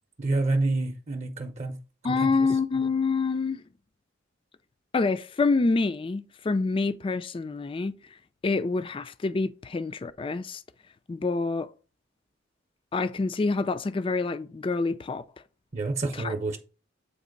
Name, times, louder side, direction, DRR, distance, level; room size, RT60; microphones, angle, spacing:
voice 1, 0.2-1.8 2.1-2.3 15.7-16.6, right 2 dB, 35° right, 0.7 m, -28 dB
voice 2, 2.0-3.6 4.9-8.0 8.4-10.6 11.1-11.7 12.9-15.2 16.2-16.3, left 3 dB, 25° left, 0.3 m, -27 dB
8.4 x 3.0 x 5.1 m
head